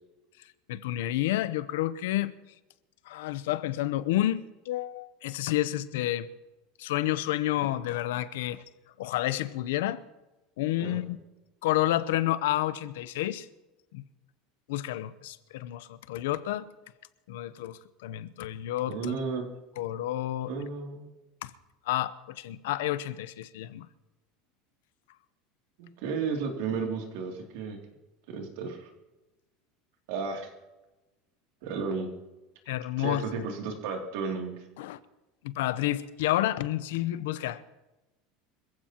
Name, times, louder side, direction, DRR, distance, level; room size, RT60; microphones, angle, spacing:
voice 1, 0.7-2.3 3.1-6.3 6.8-8.6 9.0-10.0 10.6-11.2 11.6-13.5 13.9-14.0 14.7-16.7 17.3-19.2 19.8-20.7 21.4-21.5 21.9-23.9 32.7-33.4 34.8-35.0 35.4-37.6, left 14 dB, 85° left, 0.7 m, -30 dB
voice 2, 18.9-19.4 20.5-21.1 25.8-27.8 28.3-28.9 30.1-30.5 31.6-32.1 33.0-34.5, right 5 dB, 70° right, 2.7 m, -33 dB
25.5 x 15.0 x 3.0 m
supercardioid pair, 150°, 0 cm